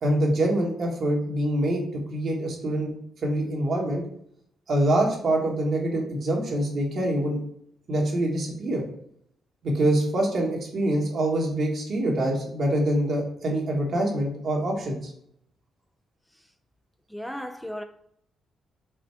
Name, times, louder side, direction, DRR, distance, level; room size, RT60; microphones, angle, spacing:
voice 1, 0.0-2.9 3.2-4.0 4.7-7.4 7.9-8.8 9.6-15.1, right 1 dB, 60° right, 1.4 m, -25 dB
voice 2, 17.1-17.8, equal, 5° left, 0.4 m, -35 dB
4.9 x 2.2 x 4.6 m
supercardioid pair, 65°, 0 cm